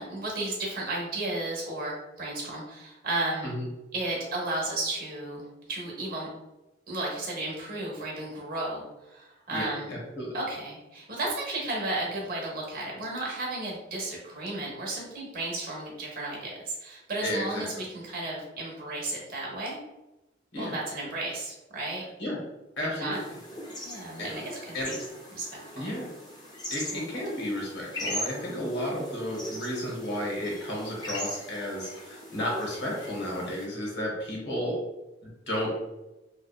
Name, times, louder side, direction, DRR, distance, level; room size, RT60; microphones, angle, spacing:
voice 1, 0.0-3.5 3.9-6.3 6.9-9.9 10.3-19.8 20.5-22.0 22.8-23.2 23.8-24.9 25.3-25.4 25.8-25.9 26.9-27.0, right 2 dB, 50° right, -2 dB, 0.7 m, -33 dB
voice 2, 9.5-10.3 17.2-17.7 20.5-20.7 22.2-22.4 22.8-23.2 24.2-24.4 24.7-24.9 25.7-26.1 26.7-34.8 35.5-35.8, left 1 dB, 70° left, -2 dB, 0.9 m, -32 dB
sound 1, 23.1-33.7, equal, 20° left, 0.5 m, -40 dB
2.6 x 2.1 x 2.3 m, 0.99 s
head